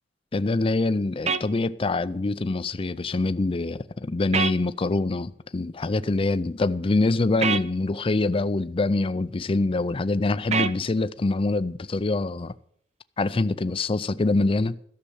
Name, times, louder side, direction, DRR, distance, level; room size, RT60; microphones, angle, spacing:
voice 1, 0.3-12.5 13.2-14.8, left 2 dB, 30° left, 0.5 m, -25 dB
sound 1, 1.3-1.4 4.3-4.6 7.4-7.6 10.5-10.8, right 5 dB, 35° right, 0.5 m, -24 dB
13.0 x 6.8 x 8.5 m
head